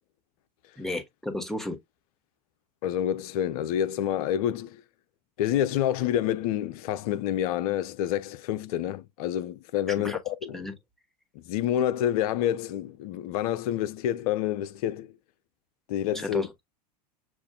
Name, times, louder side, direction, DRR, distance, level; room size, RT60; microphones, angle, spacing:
voice 1, 0.8-1.8 9.9-10.2 10.5-10.7 16.1-16.6, left 1 dB, ahead, 1.2 m, -33 dB
voice 2, 2.8-4.8 5.4-10.6 11.3-15.1 15.9-16.4, left 11 dB, 60° left, 0.6 m, -28 dB
7.1 x 2.5 x 2.2 m
hypercardioid pair, 85°, 21 cm